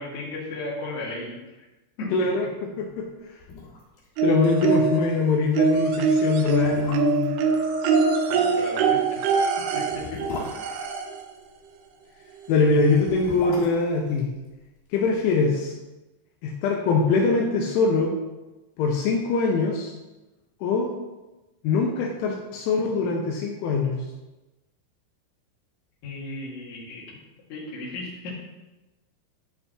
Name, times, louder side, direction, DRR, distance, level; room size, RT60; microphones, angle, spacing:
voice 1, 0.0-1.6 2.0-2.3 8.3-9.2 9.6-10.2 10.6-10.8 26.0-27.2 27.5-28.3, left 2 dB, 45° left, -6 dB, 2.7 m, -35 dB
voice 2, 2.1-2.5 2.8-3.1 4.2-7.3 12.5-14.3 14.9-15.7 16.4-18.1 18.8-19.9 20.6-20.9 21.6-24.0, left 4 dB, 80° left, 0 dB, 3.1 m, -23 dB
sound 1, 3.0-3.1 3.4-4.1 4.3-4.4 4.8-5.0 5.7-5.8 6.5-7.4 8.9-11.6 12.8-15.1 15.3-15.4, left 3 dB, 65° left, 3.7 m, -38 dB
sound 2, 4.2-5.1 5.6-11.2 12.5-12.6 12.9-13.0, right 5 dB, 85° right, 3.3 m, -23 dB
11.0 x 5.6 x 3.1 m, 1.1 s
omnidirectional pair, 5.8 m